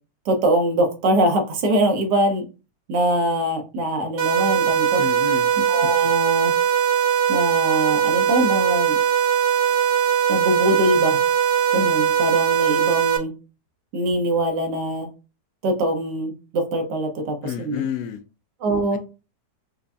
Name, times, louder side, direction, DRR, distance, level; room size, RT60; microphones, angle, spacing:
voice 1, 0.3-2.4 2.9-5.0 5.7-6.5 7.3-9.0 10.3-11.2 11.7-13.3 13.9-15.1 15.6-17.8 18.6-19.0, right 1 dB, 80° right, 4 dB, 1.5 m, -23 dB
sound 1, 4.2-13.2, right 9 dB, 60° right, 0.7 m, -20 dB
voice 2, 5.0-5.5 17.4-18.2, left 7 dB, 80° left, 9 dB, 1.2 m, -29 dB
5.1 x 2.2 x 2.5 m, 0.31 s
omnidirectional pair, 1.8 m